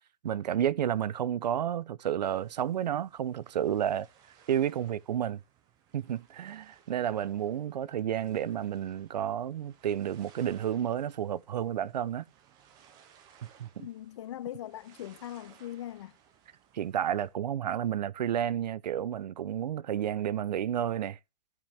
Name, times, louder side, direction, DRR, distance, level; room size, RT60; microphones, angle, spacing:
voice 1, 0.2-4.1 4.5-5.4 5.9-12.3 13.4-13.9 16.7-21.2, right 10 dB, 90° right, 0.6 m, -31 dB
sound 1, 2.2-17.3, right 8 dB, 20° right, 0.8 m, -62 dB
voice 2, 13.8-16.2, left 12 dB, 45° left, 0.5 m, -40 dB
14.5 x 5.3 x 3.4 m
hypercardioid pair, 165°, 21 cm